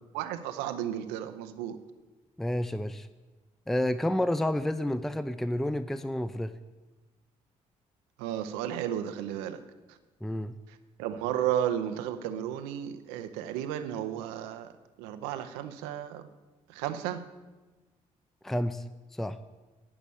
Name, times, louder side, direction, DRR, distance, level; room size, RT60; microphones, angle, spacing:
voice 1, 0.1-1.8 8.2-9.6 11.0-14.7 15.0-16.2 16.7-17.2, right 10 dB, 90° right, 9 dB, 0.6 m, -33 dB
voice 2, 2.4-3.1 3.7-6.5 10.2-10.6 18.4-18.8 19.1-19.4, left 1 dB, ahead, 12 dB, 0.5 m, -30 dB
9.7 x 6.1 x 6.9 m, 1.2 s
hypercardioid pair, 50°, 16 cm